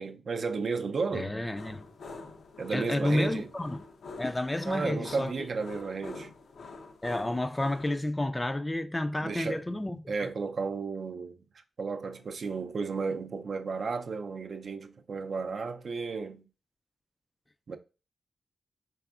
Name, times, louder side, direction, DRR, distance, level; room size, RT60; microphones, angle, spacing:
voice 1, 0.0-1.4 2.6-3.5 4.7-6.3 9.2-9.6 10.1-11.5 11.8-16.5 17.7-17.8, right 4 dB, 60° right, 0.4 m, -33 dB
voice 2, 1.1-1.8 2.7-3.8 4.2-5.5 7.0-10.3, left 1 dB, 20° left, 0.3 m, -31 dB
sound 1, 1.6-8.0, left 3 dB, 80° left, 0.6 m, -46 dB
4.7 x 3.4 x 2.4 m
wide cardioid pair, 95°, 0 cm